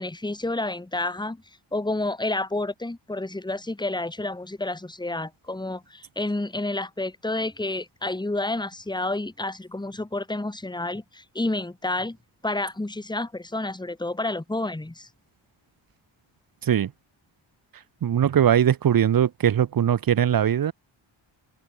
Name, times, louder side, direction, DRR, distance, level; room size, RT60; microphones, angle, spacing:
voice 1, 0.0-1.4 1.7-12.2 12.4-15.1, left 2 dB, 10° left, 2.6 m, -30 dB
voice 2, 18.0-20.7, right 9 dB, 45° right, 0.8 m, -20 dB
wide cardioid pair, 180°, 49 cm